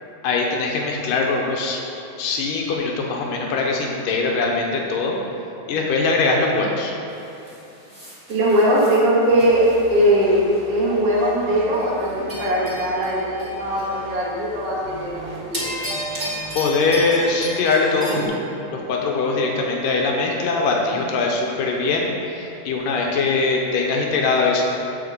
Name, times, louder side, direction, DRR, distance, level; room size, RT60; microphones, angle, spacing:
voice 1, 0.2-1.8 2.2-5.2 5.7-6.9 16.5-18.3 18.7-24.6, left 3 dB, 80° left, 0 dB, 2.5 m, -22 dB
sound 1, 7.1-10.8 11.2-11.4 11.7-14.2 14.5-15.0 15.3-18.2, equal, 20° right, 1.6 m, -34 dB
voice 2, 8.3-15.6, equal, 50° right, -8 dB, 2.6 m, -20 dB
sound 2, 9.3-17.2, right 2 dB, 70° right, 2.8 m, -39 dB
9.0 x 5.2 x 6.6 m, 3.0 s
omnidirectional pair, 3.9 m